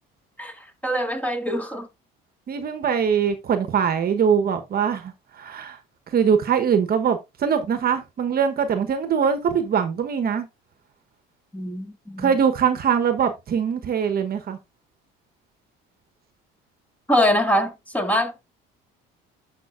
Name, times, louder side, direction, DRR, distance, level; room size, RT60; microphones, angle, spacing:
voice 1, 0.8-1.9 11.5-12.3 17.1-18.4, equal, 5° left, 1.8 m, -23 dB
voice 2, 2.5-5.8 6.1-10.5 12.2-14.6, right 7 dB, 45° right, 1.1 m, -22 dB
11.5 x 5.3 x 2.5 m
supercardioid pair, 90°, 21 cm